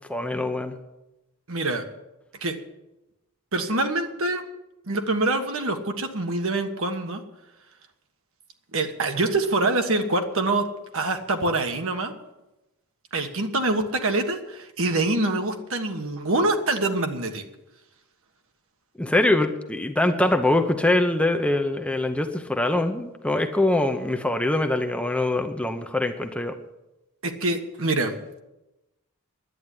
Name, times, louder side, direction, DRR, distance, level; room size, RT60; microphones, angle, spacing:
voice 1, 0.1-0.7 19.0-26.6, left 2 dB, 5° left, 6 dB, 0.8 m, -23 dB
voice 2, 1.5-1.8 2.4-2.6 3.5-4.4 4.9-7.2 8.7-10.7 10.9-12.1 13.1-17.4 27.2-28.1, right 2 dB, 65° right, 5 dB, 1.5 m, -25 dB
11.0 x 9.0 x 9.8 m, 0.97 s
head